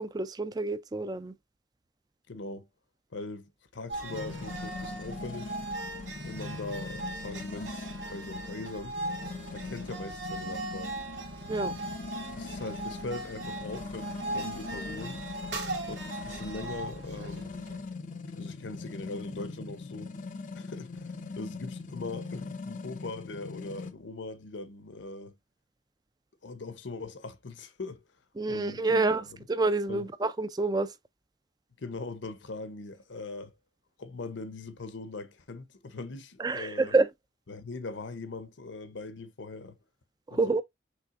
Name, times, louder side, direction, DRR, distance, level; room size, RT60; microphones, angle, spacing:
voice 1, 0.0-1.4 11.5-11.7 28.4-30.9 36.4-37.1 40.3-40.6, right 3 dB, 20° right, 0.3 m, -28 dB
voice 2, 2.3-2.7 3.1-5.5 6.2-9.0 9.5-10.9 11.6-11.8 12.4-15.2 15.9-17.5 18.4-20.1 20.5-25.3 26.4-28.0 28.5-29.1 29.9-30.1 31.8-33.5 34.0-36.9 37.5-39.8 40.3-40.6, left 3 dB, 75° left, 0.7 m, -41 dB
sound 1, 3.9-17.9, right 2 dB, 70° right, 2.1 m, -39 dB
sound 2, 4.1-23.9, left 3 dB, 40° left, 0.4 m, -41 dB
5.9 x 3.3 x 2.4 m
head